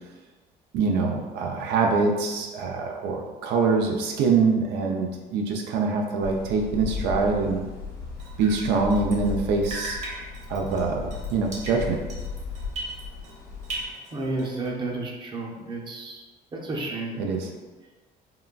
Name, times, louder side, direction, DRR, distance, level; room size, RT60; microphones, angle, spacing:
voice 1, 0.7-7.6 8.4-10.0 10.5-12.0 17.2-17.5, right 4 dB, 85° right, 1 dB, 0.4 m, -24 dB
sound 1, 6.2-13.9, left 5 dB, 70° left, 0.7 m, -36 dB
Drip, 8.2-9.4 9.6-13.4 13.6-14.7, right 2 dB, 45° right, 0.9 m, -38 dB
voice 2, 14.1-16.2 16.5-17.2, right 2 dB, 30° right, -1 dB, 0.6 m, -31 dB
3.7 x 2.2 x 2.3 m, 1.2 s
cardioid pair, 110°, 17 cm